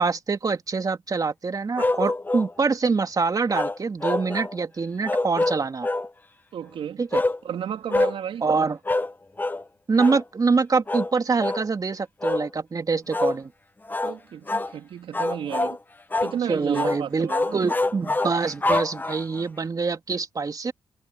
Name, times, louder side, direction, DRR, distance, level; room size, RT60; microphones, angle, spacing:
voice 1, 0.0-5.9 7.0-7.2 8.4-8.8 9.9-13.5 16.5-20.7, right 4 dB, 40° right, 2.9 m, -25 dB
sound 1, 1.8-2.5 3.5-4.6 5.0-6.1 7.1-7.4 7.9-8.2 8.9-9.1 9.4-9.6 10.0-10.2 10.9-11.1 11.4-11.7 12.2-12.5 13.1-13.4 13.9-14.2 14.5-14.7 15.1-15.8 16.1-16.4 16.7-17.0 17.3-19.4, left 2 dB, 20° left, 1.2 m, -25 dB
voice 2, 6.5-7.0 7.4-8.4 14.0-15.8 16.2-17.6, right 9 dB, 75° right, 3.1 m, -32 dB
cardioid pair, 65°, 9 cm